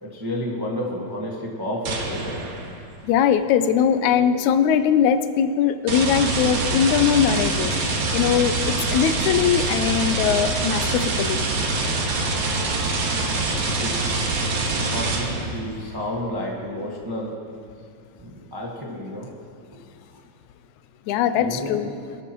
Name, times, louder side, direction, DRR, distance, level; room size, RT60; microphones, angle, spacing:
voice 1, 0.0-2.4 6.7-6.8 13.7-17.4 18.2-19.3 19.7-19.8 21.3-21.9, left 1 dB, 20° right, -2 dB, 0.6 m, -31 dB
sound 1, 1.9-2.8 5.9-15.6, right 3 dB, 80° right, 2.9 m, -25 dB
voice 2, 3.0-11.5 21.1-21.9, left 8 dB, 85° left, 11 dB, 2.0 m, -21 dB
sound 2, 11.2-13.7 13.9-14.0, right 4 dB, 50° right, 1.7 m, -39 dB
22.5 x 13.0 x 3.1 m, 2.3 s
omnidirectional pair, 3.3 m